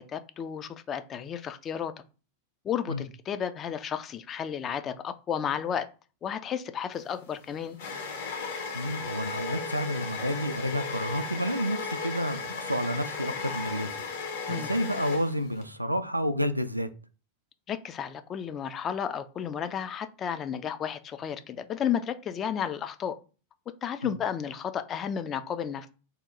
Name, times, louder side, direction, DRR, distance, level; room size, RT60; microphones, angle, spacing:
voice 1, 0.1-1.9 2.6-5.9 6.2-7.8 14.5-14.7 17.7-23.2 23.8-25.9, left 8 dB, 25° left, 0.3 m, -32 dB
sound 1, 7.0-15.7, left 4 dB, 55° left, 0.9 m, -36 dB
voice 2, 8.7-13.9 14.5-16.9 24.0-24.1, equal, 85° right, 0.3 m, -30 dB
2.8 x 2.2 x 3.7 m
figure-of-eight pair, 90°, 0 cm